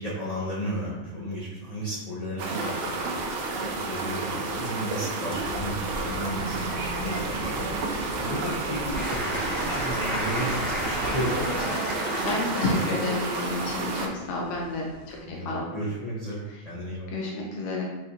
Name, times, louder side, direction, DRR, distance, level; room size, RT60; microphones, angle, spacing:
voice 1, 0.0-11.7 15.2-17.1, equal, 35° left, -7 dB, 0.7 m, -34 dB
sound 1, 2.4-14.1, right 3 dB, 65° right, 0.6 m, -31 dB
sound 2, 5.3-11.7, right 1 dB, 80° right, 1.2 m, -38 dB
Applause / Crowd, 8.9-15.2, equal, 15° left, 1.3 m, -33 dB
voice 2, 11.9-15.7 17.1-17.8, left 2 dB, 65° left, -2 dB, 1.0 m, -30 dB
4.4 x 3.1 x 2.7 m, 1.1 s
omnidirectional pair, 1.4 m